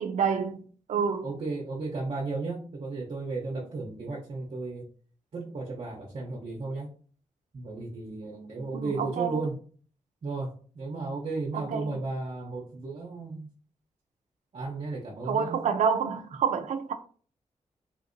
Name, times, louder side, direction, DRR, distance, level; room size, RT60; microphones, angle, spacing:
voice 1, 0.0-1.3 8.7-9.4 11.5-12.0 15.2-16.9, right 6 dB, 75° right, 0.4 m, -28 dB
voice 2, 1.2-4.9 5.3-6.9 7.5-9.6 10.2-13.5 14.5-15.6, right 3 dB, 50° right, 0.7 m, -34 dB
3.4 x 2.6 x 2.6 m
wide cardioid pair, 115°, 13 cm